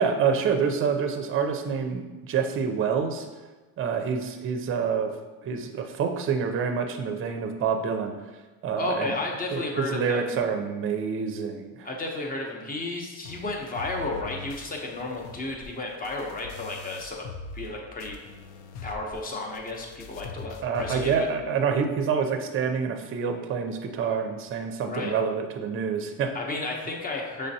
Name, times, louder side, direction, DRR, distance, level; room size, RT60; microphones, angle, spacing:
voice 1, 0.0-3.3 3.8-5.1 5.4-8.1 8.6-9.1 9.5-11.9 20.6-26.3, right 6 dB, 35° right, 5 dB, 0.5 m, -27 dB
voice 2, 8.8-10.4 11.8-17.2 17.5-18.2 18.8-21.3 24.9-25.1 26.3-27.5, left 2 dB, 25° left, 0 dB, 0.7 m, -33 dB
sound 1, 13.2-17.7 18.0-21.2, left 3 dB, 90° left, 0.5 m, -42 dB
5.6 x 3.3 x 2.7 m, 1.2 s
cardioid pair, 130°, 37 cm